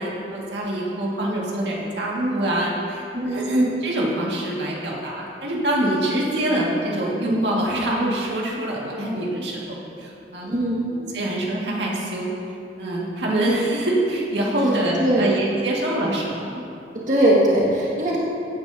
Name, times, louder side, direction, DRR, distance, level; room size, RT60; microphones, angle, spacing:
voice 1, 0.0-10.5 10.9-12.3 12.8-16.6, right 1 dB, 75° right, -4 dB, 2.0 m, -24 dB
voice 2, 3.1-3.5 10.4-10.8 15.0-15.3 17.1-18.2, right 1 dB, 45° right, -5 dB, 1.8 m, -20 dB
16.5 x 9.8 x 2.8 m, 2.6 s
head